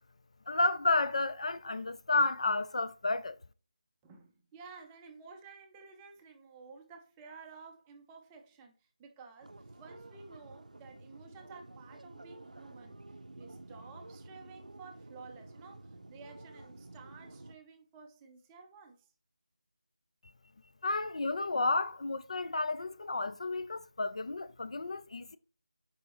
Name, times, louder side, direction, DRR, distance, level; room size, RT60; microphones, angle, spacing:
voice 1, 0.5-3.4 20.8-25.4, left 2 dB, 55° left, 0.4 m, -31 dB
voice 2, 4.0-19.1, right 4 dB, 10° right, 0.5 m, -53 dB
sound 1, 9.4-17.5, right 2 dB, 80° right, 0.5 m, -51 dB
6.6 x 4.9 x 2.9 m
figure-of-eight pair, 165°, 4 cm